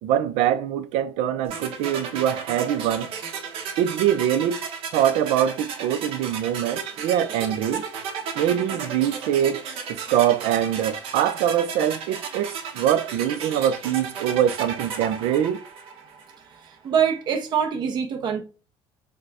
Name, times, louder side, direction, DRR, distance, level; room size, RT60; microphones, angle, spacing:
voice 1, 0.0-3.1 3.8-4.6 4.9-7.8 8.4-9.6 9.9-15.6, right 10 dB, 85° right, 0.5 m, -23 dB
sound 1, 1.5-16.4, right 6 dB, 65° right, 1.0 m, -34 dB
voice 2, 16.8-18.4, right 7 dB, 45° right, 0.7 m, -24 dB
4.9 x 2.2 x 4.7 m
cardioid pair, 140°, 10 cm